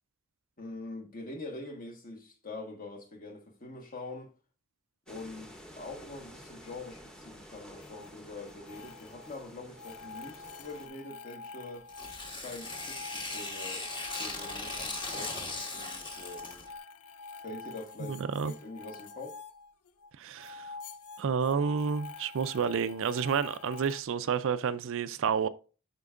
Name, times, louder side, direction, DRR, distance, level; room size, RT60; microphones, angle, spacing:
voice 1, 0.6-4.3 5.1-11.9 12.3-13.9 14.2-16.7 17.4-19.4, left 2 dB, 40° left, 1.3 m, -44 dB
sound 1, 5.1-10.9, equal, 5° left, 0.9 m, -51 dB
sound 2, 7.8-8.1 8.5-9.4 9.7-20.1 20.4-24.0, left 4 dB, 80° left, 0.5 m, -46 dB
Tearing, 11.9-16.7, left 2 dB, 20° left, 1.2 m, -38 dB
voice 2, 18.1-18.5 20.2-20.7 21.2-25.5, right 6 dB, 60° right, 0.4 m, -30 dB
12.0 x 4.5 x 2.4 m
head